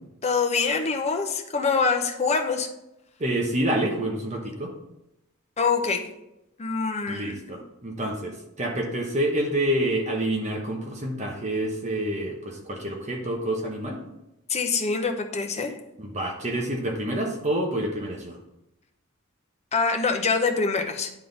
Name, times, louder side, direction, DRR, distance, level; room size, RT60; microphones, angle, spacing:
voice 1, 0.2-2.7 5.6-6.1 6.6-7.4 14.5-15.7 19.7-21.1, left 4 dB, 30° left, 5 dB, 0.7 m, -25 dB
voice 2, 3.2-4.7 7.1-14.0 16.0-18.3, right 1 dB, 35° right, 1 dB, 1.0 m, -28 dB
10.0 x 3.7 x 3.9 m, 0.88 s
head